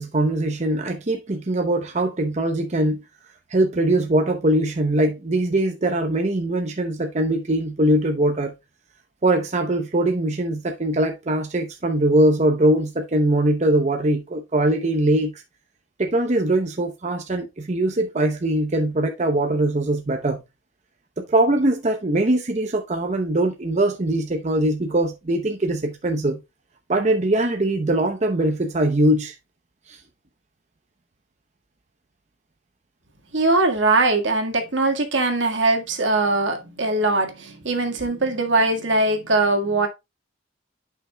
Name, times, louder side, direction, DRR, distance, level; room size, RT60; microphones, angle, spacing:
voice 1, 0.0-3.0 3.5-8.5 9.2-15.4 16.0-20.4 21.2-26.4 26.9-29.3 29.9-30.0, right 1 dB, 35° right, 0.8 m, -21 dB
voice 2, 33.3-39.9, right 2 dB, 75° right, 1.7 m, -21 dB
10.5 x 5.7 x 2.3 m
head